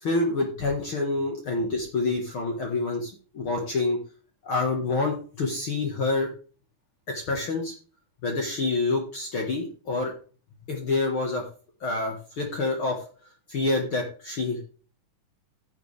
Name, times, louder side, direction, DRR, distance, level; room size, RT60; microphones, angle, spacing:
voice 1, 0.0-4.0 4.4-6.3 7.1-7.7 8.2-10.1 10.7-11.5 11.8-13.0 13.5-14.6, left 3 dB, 50° left, 1 dB, 2.1 m, -27 dB
15.5 x 7.0 x 3.4 m, 0.39 s
omnidirectional pair, 3.6 m